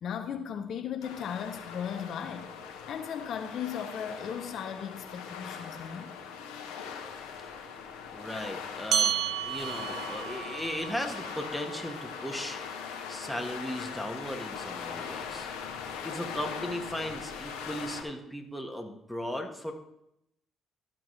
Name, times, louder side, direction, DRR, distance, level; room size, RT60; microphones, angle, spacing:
voice 1, 0.0-2.5 2.9-6.2, left 8 dB, 60° left, 0.6 m, -36 dB
sound 1, 1.0-18.0, left 6 dB, 80° left, 1.1 m, -41 dB
voice 2, 8.1-12.6 13.1-15.5 16.0-19.7, equal, 5° left, 1.5 m, -37 dB
sound 2, 8.9-13.7, right 8 dB, 65° right, 0.5 m, -34 dB
13.0 x 6.1 x 3.2 m
hypercardioid pair, 50°, 0 cm